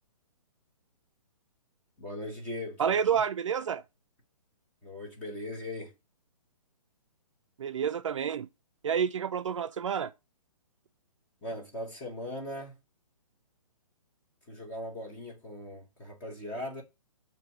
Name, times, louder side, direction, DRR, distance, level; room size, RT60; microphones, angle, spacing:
voice 1, 2.0-3.2 4.8-5.9 11.4-12.8 14.5-16.8, left 1 dB, 10° left, 0.8 m, -39 dB
voice 2, 2.8-3.8 7.6-8.5 8.8-10.1, right 7 dB, 55° right, 0.4 m, -29 dB
6.6 x 2.8 x 5.7 m
hypercardioid pair, 175°, 19 cm